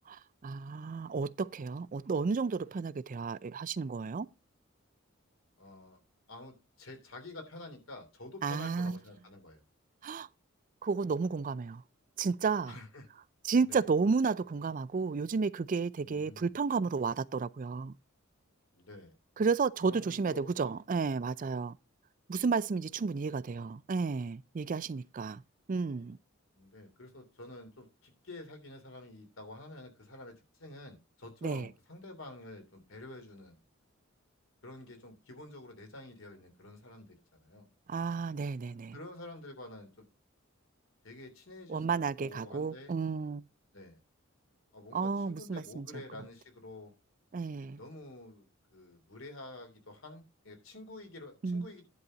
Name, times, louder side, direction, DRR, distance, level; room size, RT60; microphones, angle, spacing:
voice 1, 0.1-4.3 8.4-9.0 10.0-10.3 10.8-11.8 12.2-12.7 13.4-17.9 19.4-21.8 22.3-25.4 25.7-26.2 31.4-31.7 37.9-39.0 41.7-43.4 44.9-45.8 47.3-47.8 51.4-51.7, right 4 dB, 40° right, 0.4 m, -32 dB
voice 2, 5.6-6.0 6.3-9.6 12.7-13.1 13.6-13.9 16.0-16.5 18.7-19.1 19.8-20.8 26.5-33.6 34.6-37.7 38.9-40.0 41.0-42.9 43.7-44.0 44.7-46.9 47.7-51.9, left 2 dB, 75° left, 3.1 m, -49 dB
10.5 x 4.2 x 6.2 m
head